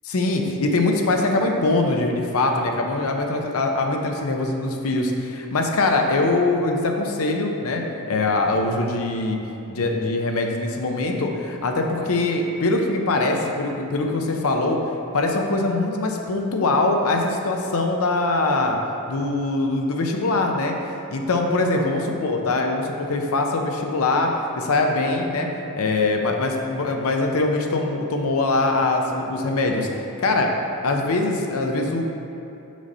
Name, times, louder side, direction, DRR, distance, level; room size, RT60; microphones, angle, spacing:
voice 1, 0.1-7.8 8.1-9.4 9.7-14.8 15.1-18.8 19.1-20.7 21.1-25.5 25.7-29.9 30.2-30.5 30.8-32.0, left 2 dB, 70° left, 2 dB, 0.6 m, -22 dB
6.2 x 5.3 x 4.1 m, 3.0 s
head